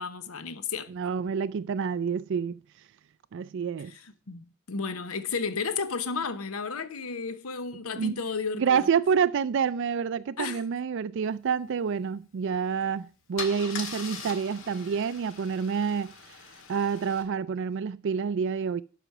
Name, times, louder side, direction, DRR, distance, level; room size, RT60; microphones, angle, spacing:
voice 1, 0.0-0.9 3.8-8.9 10.4-10.6, left 5 dB, 85° left, 0.9 m, -33 dB
voice 2, 0.9-2.5 3.3-3.9 8.0-8.2 8.6-16.1 16.7-18.8, right 6 dB, 60° right, 0.4 m, -28 dB
Car / Engine starting / Idling, 12.6-12.8 13.4-17.2, left 5 dB, 65° left, 2.0 m, -41 dB
12.0 x 5.0 x 6.0 m
head